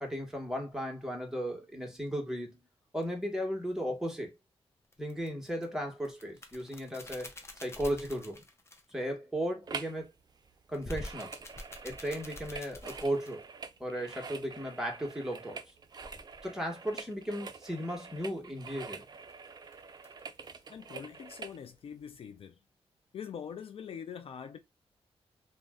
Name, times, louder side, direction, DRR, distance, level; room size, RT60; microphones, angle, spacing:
voice 1, 0.0-2.7 2.9-4.4 5.0-8.4 8.9-10.1 10.7-11.3 11.8-13.4 13.8-15.6 16.4-19.0, equal, 5° right, 1.1 m, -36 dB
sound 1, 3.0-3.2 4.9-5.6 6.0-9.0 10.7-13.4 15.9-16.5 19.0-20.6 21.0-21.1 21.4-21.7, left 1 dB, 25° left, 0.6 m, -47 dB
sound 2, 9.7-10.0 10.3-21.6 22.1-22.2, right 5 dB, 40° right, 0.4 m, -46 dB
voice 2, 20.7-22.5 23.1-24.6, left 7 dB, 60° left, 0.4 m, -43 dB
2.4 x 2.1 x 3.5 m
cardioid pair, 80°, 11 cm